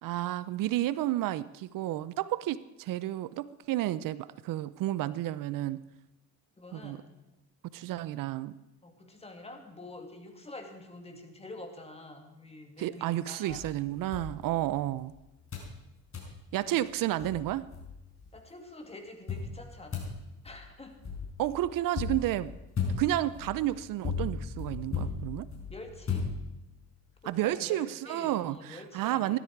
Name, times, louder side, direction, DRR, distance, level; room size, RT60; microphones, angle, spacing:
voice 1, 0.0-5.8 6.7-7.0 7.7-8.5 12.8-15.1 16.5-17.7 21.4-22.5 23.0-25.5 27.3-29.4, right 14 dB, 60° right, 17 dB, 0.7 m, -31 dB
voice 2, 6.6-7.2 8.8-13.7 16.6-17.4 18.3-20.1 20.4-21.0 25.7-26.3 27.2-29.4, left 2 dB, 15° left, 4 dB, 2.4 m, -47 dB
sound 1, 13.5-15.1 15.5-15.8 16.1-16.4 16.9-17.0 17.2-18.3 19.3-26.9, left 5 dB, 35° left, 5.3 m, -36 dB
16.5 x 13.0 x 4.7 m, 0.95 s
cardioid pair, 100°, 37 cm